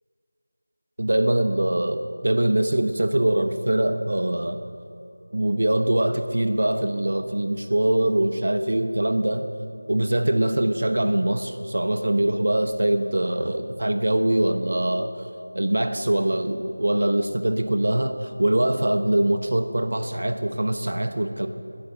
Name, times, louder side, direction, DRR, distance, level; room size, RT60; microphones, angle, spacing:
voice 1, 1.0-4.6 5.3-9.5 9.9-15.3 15.5-21.5, right 1 dB, 65° right, 8 dB, 1.1 m, -23 dB
15.0 x 14.5 x 6.6 m, 2.5 s
figure-of-eight pair, 175°, 0 cm